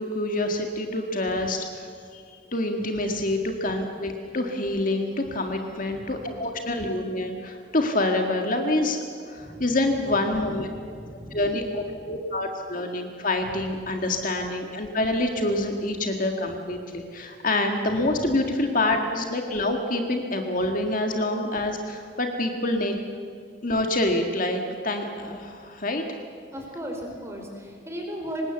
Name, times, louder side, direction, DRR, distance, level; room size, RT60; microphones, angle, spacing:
voice 1, 0.0-1.9 2.1-2.2 2.5-9.0 9.3-10.7 11.3-22.9 23.6-26.0, left 1 dB, 40° left, 4 dB, 1.9 m, -26 dB
voice 2, 9.4-9.7 10.7-11.4 26.5-28.5, equal, 15° right, 1 dB, 4.5 m, -36 dB
25.5 x 20.5 x 8.0 m, 2.2 s
head